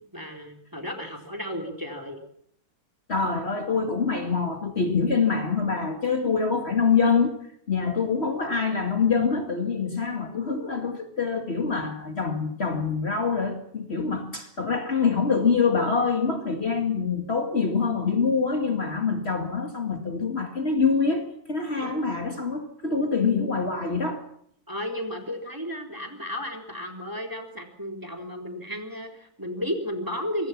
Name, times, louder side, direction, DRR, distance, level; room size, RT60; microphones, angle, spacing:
voice 1, 0.1-2.2 21.8-21.9 24.7-30.5, equal, 10° right, 3 dB, 3.8 m, -33 dB
voice 2, 3.1-7.3 7.7-24.2, left 5 dB, 40° left, 4 dB, 2.2 m, -25 dB
25.0 x 21.0 x 6.0 m, 0.67 s
omnidirectional pair, 1.7 m